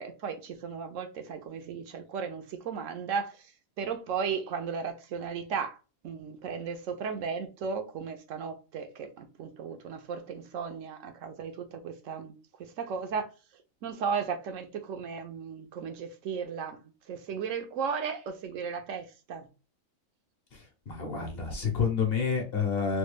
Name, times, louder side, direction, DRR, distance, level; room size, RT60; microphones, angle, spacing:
voice 1, 0.0-3.5 3.8-5.8 6.0-12.3 12.6-13.3 13.8-16.8 17.1-19.5, right 6 dB, 75° right, 1.0 m, -35 dB
voice 2, 20.5-23.0, left 6 dB, 50° left, 0.9 m, -29 dB
3.2 x 2.2 x 3.2 m
omnidirectional pair, 1.4 m